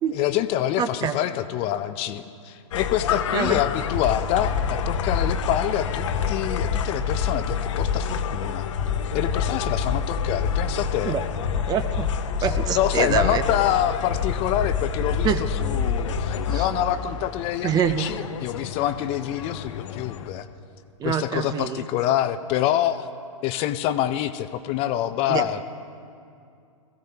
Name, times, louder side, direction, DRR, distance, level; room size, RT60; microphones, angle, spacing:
voice 1, 0.1-8.7 9.1-11.2 12.7-20.5 21.0-23.1 23.4-25.6, left 12 dB, 35° left, 11 dB, 0.6 m, -26 dB
voice 2, 0.8-1.2 3.3-3.6 11.0-11.2 11.5-12.1 12.4-13.4 15.2-15.4 16.5-16.7 17.6-18.1 21.0-21.8 25.3-25.5, right 8 dB, 20° right, 11 dB, 0.7 m, -25 dB
sound 1, 2.7-20.3, left 6 dB, 60° left, 0.9 m, -27 dB
22.0 x 15.5 x 2.9 m, 2.4 s
hypercardioid pair, 115°, 18 cm